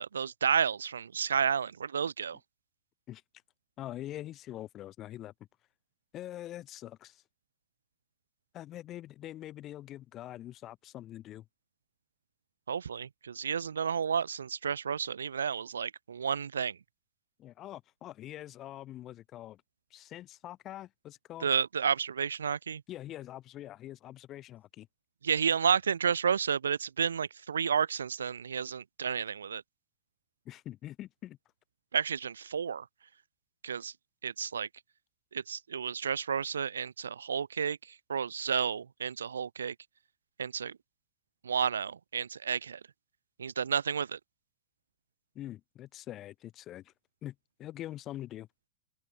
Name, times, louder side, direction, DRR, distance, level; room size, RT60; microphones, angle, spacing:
voice 1, 0.0-2.4 12.7-16.8 21.4-22.8 25.2-29.6 31.9-32.9 33.6-33.9 34.2-34.7 35.3-37.8 38.1-39.7 40.4-40.7 41.4-42.8 43.4-44.2, right 7 dB, 70° right, 0.4 m, -31 dB
voice 2, 3.8-5.3 6.1-7.2 8.5-11.5 17.4-19.6 19.9-21.5 22.9-24.9 30.5-31.4 45.3-46.9 47.2-48.5, left 13 dB, 35° left, 0.7 m, -44 dB
open air
figure-of-eight pair, 90°, 0 cm